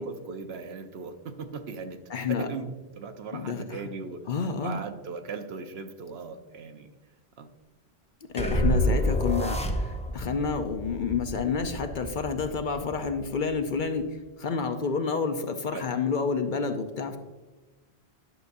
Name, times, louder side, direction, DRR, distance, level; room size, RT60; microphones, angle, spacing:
voice 1, 0.0-2.0 2.3-4.3 4.6-6.9 7.4-7.5 15.7-15.9, right 5 dB, 75° right, 7 dB, 0.9 m, -38 dB
voice 2, 2.1-2.5 3.3-3.8 4.3-4.8 8.3-17.2, left 5 dB, 55° left, 7 dB, 0.7 m, -29 dB
sound 1, 8.4-10.3, equal, 10° left, 0.5 m, -30 dB
sound 2, 8.4-14.0, equal, 45° right, 1.3 m, -30 dB
10.5 x 6.7 x 2.6 m, 1.2 s
omnidirectional pair, 1.1 m